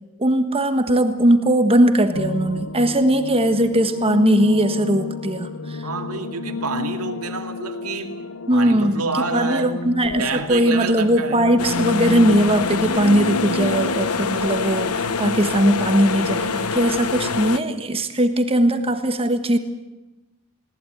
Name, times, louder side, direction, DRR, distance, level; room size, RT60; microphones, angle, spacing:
voice 1, 0.2-5.8 8.5-19.6, right 1 dB, 25° right, 1.5 m, -19 dB
sound 1, 2.1-14.3, left 3 dB, 65° left, 0.9 m, -31 dB
voice 2, 5.8-8.2 8.5-9.7 10.2-11.4, right 4 dB, 75° right, 2.3 m, -28 dB
sound 2, 11.6-17.6, left 5 dB, 85° left, 1.1 m, -25 dB
20.5 x 18.5 x 9.2 m
head